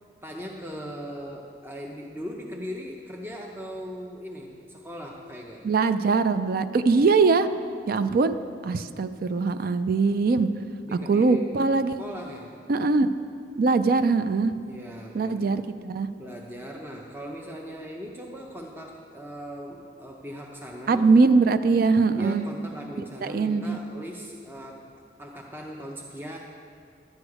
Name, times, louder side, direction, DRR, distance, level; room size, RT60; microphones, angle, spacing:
voice 1, 0.2-5.6 10.8-11.5 11.9-12.6 14.6-15.7 16.2-21.1 22.2-24.9 25.2-26.4, equal, 10° right, -1 dB, 0.6 m, -39 dB
voice 2, 5.6-7.5 7.9-8.3 8.6-10.5 11.1-12.0 12.7-13.1 13.6-14.5 15.1-16.1 20.9-22.4 23.2-23.8, right 4 dB, 55° right, 11 dB, 0.4 m, -22 dB
11.5 x 8.0 x 4.8 m, 2.3 s
head